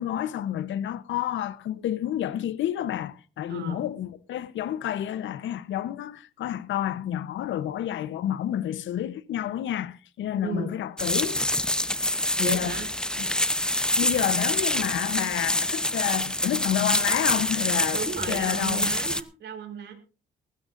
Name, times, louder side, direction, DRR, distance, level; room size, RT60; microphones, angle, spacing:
voice 1, 0.0-11.4 12.4-12.8 13.2-13.3 14.0-18.0 18.3-18.9, left 11 dB, 75° left, 0.9 m, -29 dB
voice 2, 3.5-3.9 10.4-10.7 12.4-12.9 17.9-19.9, right 6 dB, 60° right, 3.1 m, -35 dB
sound 1, 11.0-19.2, left 1 dB, 5° left, 0.7 m, -26 dB
20.5 x 13.0 x 2.6 m
cardioid pair, 90°, 20 cm